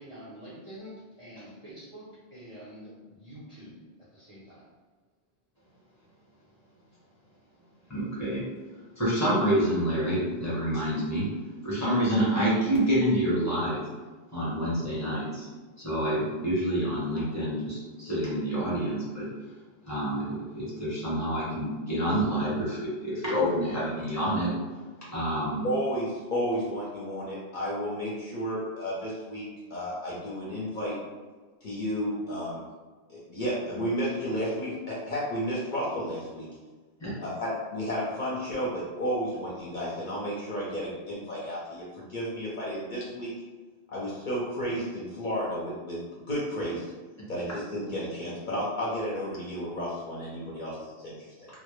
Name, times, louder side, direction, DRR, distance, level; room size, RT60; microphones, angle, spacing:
voice 1, 0.0-3.8 4.1-4.7, equal, 40° right, -10 dB, 0.5 m, -46 dB
voice 2, 7.9-8.4 9.0-11.3 11.6-13.8 14.3-15.5 15.8-19.3 19.9-24.5 25.1-25.7 37.0-37.1, equal, 20° left, -9 dB, 0.7 m, -27 dB
voice 3, 25.6-29.4 29.7-31.0 31.6-32.6 33.1-36.5 37.2-43.3 43.9-46.0 46.3-46.9 47.3-51.5, equal, 55° left, -6 dB, 0.6 m, -32 dB
2.0 x 2.0 x 3.0 m, 1.3 s
omnidirectional pair, 1.1 m